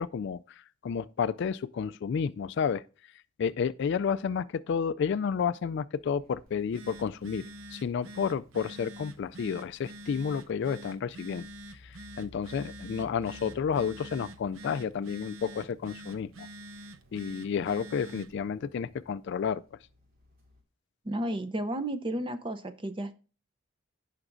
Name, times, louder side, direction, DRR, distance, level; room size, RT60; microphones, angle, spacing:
voice 1, 0.0-2.8 3.4-7.4 7.7-11.5 11.7-16.5 17.1-19.6, left 6 dB, 55° left, 0.3 m, -31 dB
sound 1, 5.9-20.6, left 1 dB, 45° right, 2.5 m, -57 dB
Telephone, 6.5-18.4, right 1 dB, 75° right, 0.7 m, -47 dB
voice 2, 21.0-23.1, right 1 dB, 25° right, 0.6 m, -32 dB
16.0 x 5.9 x 2.6 m
head